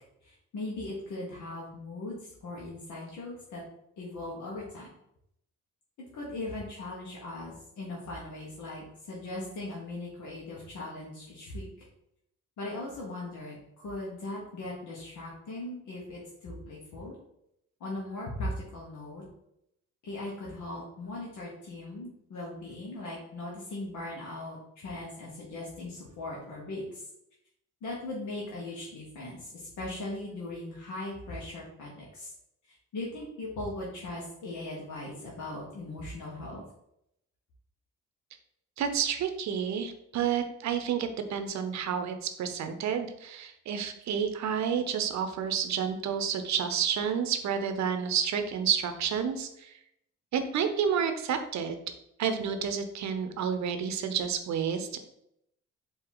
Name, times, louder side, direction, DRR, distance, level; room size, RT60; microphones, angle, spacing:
voice 1, 0.5-3.6 4.0-4.9 6.1-11.6 12.6-17.2 17.8-19.2 20.0-26.8 27.8-32.3 32.9-36.6, left 2 dB, 75° left, -4 dB, 1.1 m, -39 dB
voice 2, 38.8-49.8 50.3-51.8 52.2-55.0, right 7 dB, 65° right, 8 dB, 0.7 m, -30 dB
4.6 x 2.8 x 3.8 m, 0.78 s
cardioid pair, 90°, 30 cm